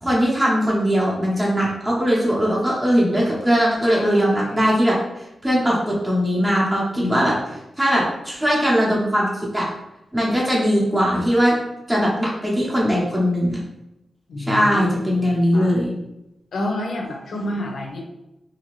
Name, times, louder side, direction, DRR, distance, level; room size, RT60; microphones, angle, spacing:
voice 1, 0.0-4.9 5.4-7.3 7.8-9.3 9.5-9.7 10.1-11.5 11.9-13.6 14.5-15.9, equal, 15° right, -4 dB, 0.7 m, -20 dB
voice 2, 3.8-4.6 7.0-7.4 14.3-15.8 16.5-18.0, left 1 dB, 75° left, 1 dB, 0.5 m, -29 dB
2.7 x 2.6 x 3.0 m, 0.91 s
wide cardioid pair, 180°, 0 cm